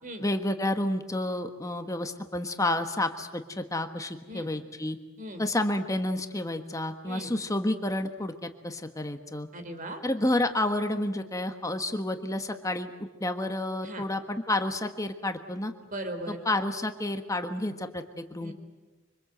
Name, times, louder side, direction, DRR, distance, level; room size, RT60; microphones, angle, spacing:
voice 1, 0.2-5.0 5.4-9.5 10.0-15.7 16.3-18.5, left 1 dB, 15° left, 7 dB, 1.3 m, -30 dB
voice 2, 9.5-10.0 13.8-14.1 15.9-16.4 18.4-18.5, right 1 dB, 40° right, 7 dB, 3.8 m, -38 dB
26.0 x 25.5 x 7.9 m, 1.2 s
head